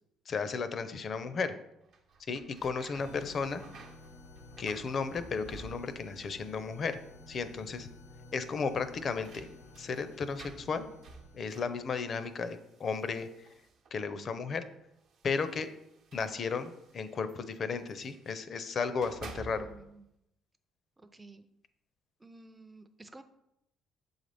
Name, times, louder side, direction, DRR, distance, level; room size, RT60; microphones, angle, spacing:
voice 1, 0.3-1.5 2.3-3.6 4.6-7.0 7.3-7.9 8.3-9.5 9.8-10.9 11.3-13.5 13.9-14.6 15.2-15.7 16.1-19.7, left 5 dB, 45° left, 12 dB, 0.5 m, -34 dB
sound 1, 1.8-6.2 6.5-7.2 7.5-7.6 8.7-14.1 14.9-18.4 18.8-20.0, right 4 dB, 65° right, 0.8 m, -53 dB
sound 2, 3.0-12.4, left 2 dB, 85° left, 1.0 m, -53 dB
voice 2, 19.5-20.1 21.0-21.5 22.2-23.2, right 2 dB, 15° right, 8 dB, 0.4 m, -52 dB
6.9 x 4.0 x 3.4 m, 0.83 s
supercardioid pair, 85°, 0 cm